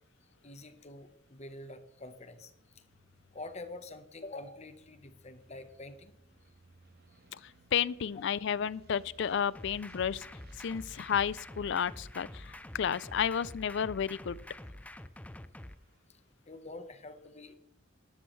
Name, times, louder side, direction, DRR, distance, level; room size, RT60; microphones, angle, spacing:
voice 1, 0.4-2.8 3.3-6.1 16.1-17.6, left 2 dB, 35° left, 9 dB, 1.1 m, -47 dB
sound 1, 0.9-16.3, right 2 dB, 55° right, 1.1 m, -62 dB
voice 2, 7.7-10.2 10.6-12.3 12.7-14.4, left 8 dB, 65° left, 20 dB, 0.4 m, -31 dB
sound 2, 9.5-15.7, left 1 dB, 5° left, 0.4 m, -47 dB
12.5 x 12.5 x 3.2 m, 0.76 s
head